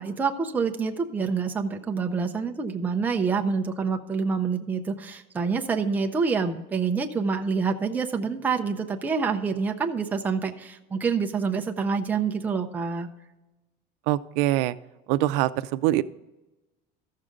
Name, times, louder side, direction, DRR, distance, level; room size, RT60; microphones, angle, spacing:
voice 1, 0.0-13.1, right 5 dB, 10° right, 4 dB, 0.4 m, -27 dB
voice 2, 14.1-14.8 15.1-16.0, right 15 dB, 85° right, 14 dB, 0.5 m, -23 dB
14.0 x 6.5 x 3.7 m, 1.1 s
cardioid pair, 180°, 21 cm